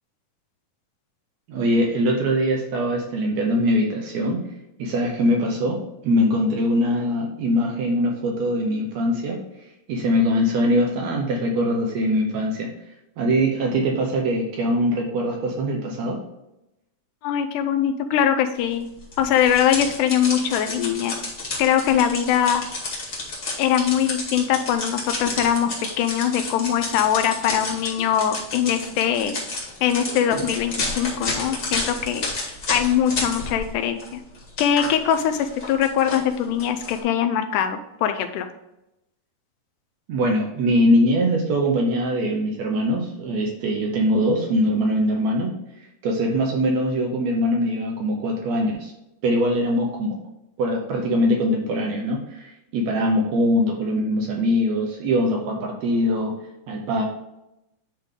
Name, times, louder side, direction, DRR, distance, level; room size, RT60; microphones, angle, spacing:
voice 1, 1.5-4.4 4.8-9.4 9.9-12.7 13.2-16.2 40.1-48.9 49.2-50.2 50.6-56.3 56.7-57.0, equal, 80° right, 0 dB, 1.6 m, -22 dB
voice 2, 17.2-18.9 19.2-21.2 21.6-22.6 23.6-29.4 29.8-32.3 32.7-34.2 34.6-38.5, left 9 dB, 80° left, 7 dB, 1.9 m, -22 dB
sound 1, 19.1-33.7 34.0-37.0, left 2 dB, 35° left, 1.6 m, -31 dB
10.0 x 3.7 x 3.7 m, 0.90 s
omnidirectional pair, 4.1 m